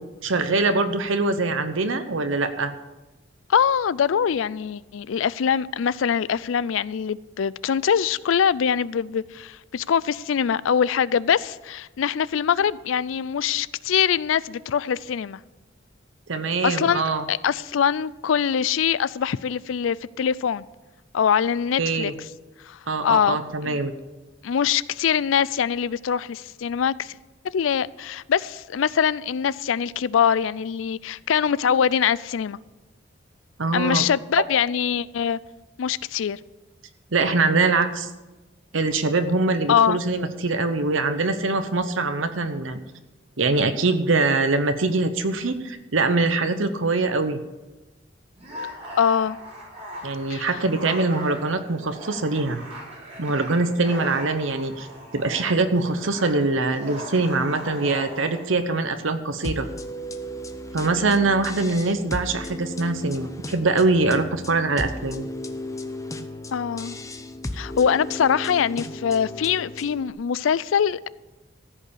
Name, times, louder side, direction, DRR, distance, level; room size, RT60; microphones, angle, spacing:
voice 1, 0.0-2.7 16.3-17.2 21.8-22.1 22.9-23.9 33.6-34.0 37.1-38.1 38.7-42.8 43.4-47.4 50.0-52.6 53.2-54.9 55.1-59.7 60.7-65.3, right 3 dB, 80° right, 0.9 m, -23 dB
voice 2, 3.5-15.4 16.6-17.0 17.3-20.6 21.1-22.1 22.7-23.4 23.6-23.8 24.4-27.1 27.5-32.6 33.7-35.4 35.8-36.4 39.7-40.0 49.0-49.4 50.3-50.5 66.5-67.0 67.5-71.1, left 7 dB, 85° left, 0.4 m, -23 dB
sound 1, 48.3-58.5, equal, 35° right, 4.0 m, -39 dB
sound 2, 59.4-70.1, left 1 dB, 15° left, 0.7 m, -35 dB
14.5 x 5.4 x 8.6 m
head